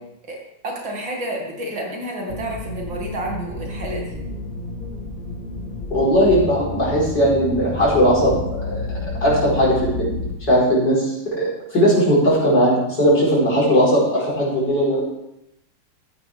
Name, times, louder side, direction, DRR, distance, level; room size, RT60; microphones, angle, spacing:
voice 1, 0.3-4.2, right 1 dB, 90° right, -1 dB, 3.2 m, -30 dB
sound 1, 2.3-10.3, left 2 dB, 45° left, 2.4 m, -30 dB
voice 2, 5.9-10.1 10.5-15.0, equal, 65° left, -7 dB, 5.5 m, -18 dB
14.0 x 9.2 x 3.6 m, 0.83 s
omnidirectional pair, 2.0 m